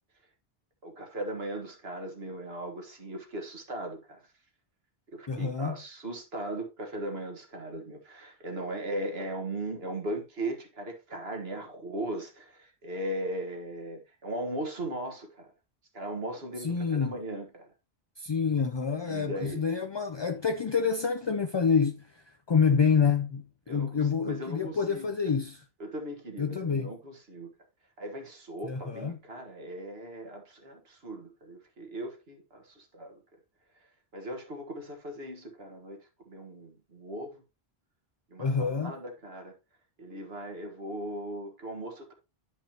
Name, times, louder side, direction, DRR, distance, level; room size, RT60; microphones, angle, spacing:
voice 1, 0.8-4.2 5.1-15.5 15.9-17.7 19.0-19.7 23.7-25.3 25.8-27.5 28.0-33.2 34.1-36.0 36.3-37.4 38.3-39.5 40.0-42.1, right 1 dB, 75° right, 1.9 m, -38 dB
voice 2, 5.3-5.8 16.6-17.2 18.2-25.6 26.4-26.9 28.6-29.2 38.4-38.9, left 6 dB, 45° left, 0.3 m, -27 dB
10.5 x 5.3 x 2.9 m
omnidirectional pair, 1.0 m